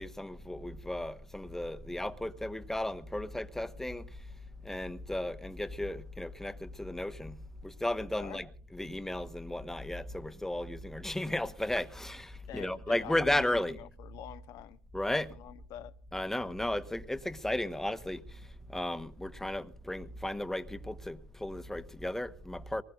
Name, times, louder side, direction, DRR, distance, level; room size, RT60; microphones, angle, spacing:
voice 1, 0.0-4.1 4.6-7.4 7.6-13.8 14.9-15.3 16.1-18.2 18.7-22.8, left 1 dB, 5° left, 1.2 m, -34 dB
voice 2, 12.5-14.8 15.1-15.9, left 12 dB, 70° left, 1.1 m, -47 dB
23.5 x 20.5 x 2.6 m
supercardioid pair, 95°, 7 cm